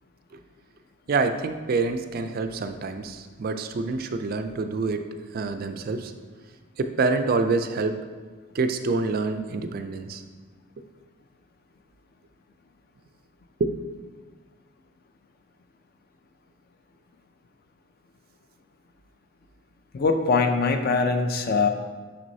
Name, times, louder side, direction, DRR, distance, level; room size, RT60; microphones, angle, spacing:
voice 1, 1.1-5.1 5.3-6.1 6.8-8.0 8.5-10.2 13.6-13.8, right 3 dB, 45° right, 8 dB, 0.3 m, -26 dB
voice 2, 19.9-21.7, left 4 dB, 45° left, 6 dB, 0.4 m, -22 dB
6.1 x 6.0 x 2.7 m, 1.5 s
head